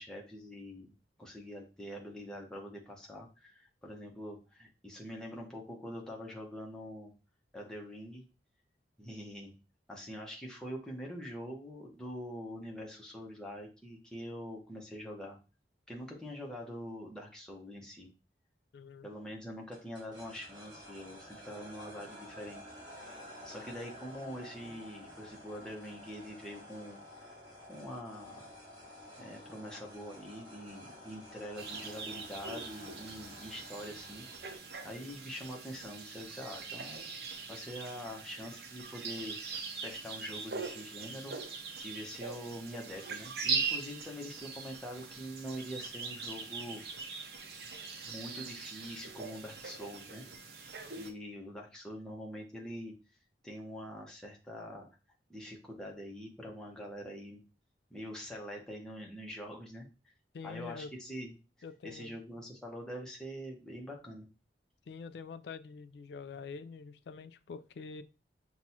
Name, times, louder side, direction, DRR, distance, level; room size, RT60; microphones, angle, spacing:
voice 1, 0.0-7.1 7.5-8.2 9.0-9.5 9.9-15.4 15.9-18.1 19.0-22.6 22.9-23.2 23.4-27.0 27.2-27.3 27.7-28.5 29.2-34.3 34.8-37.0 37.5-41.3 41.8-46.8 48.0-50.2 50.5-50.6 51.0-52.9 53.4-54.9 55.3-57.4 57.9-59.9 60.4-61.3 61.8-64.3, equal, 5° left, 0.9 m, -44 dB
voice 2, 18.7-19.1 60.3-60.9 61.6-62.1 64.9-68.0, left 5 dB, 70° left, 0.3 m, -45 dB
sound 1, 19.7-34.6, left 1 dB, 25° right, 1.6 m, -51 dB
sound 2, 31.6-51.1, right 5 dB, 60° right, 0.6 m, -41 dB
6.0 x 2.3 x 2.8 m
head